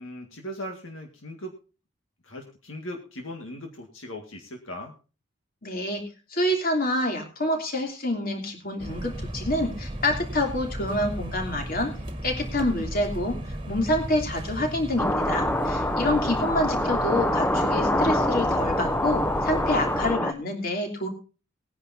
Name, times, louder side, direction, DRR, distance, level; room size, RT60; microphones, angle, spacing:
voice 1, 0.0-1.6 2.2-4.9, equal, 75° left, 2 dB, 1.9 m, -38 dB
voice 2, 5.6-6.0 6.3-11.9 12.2-13.3 13.7-21.1, left 1 dB, 45° left, 3 dB, 3.0 m, -27 dB
sound 1, 8.8-20.1, equal, 25° right, 1.7 m, -35 dB
sound 2, 15.0-20.3, left 1 dB, 10° left, 0.7 m, -25 dB
20.5 x 10.0 x 2.7 m, 0.33 s
head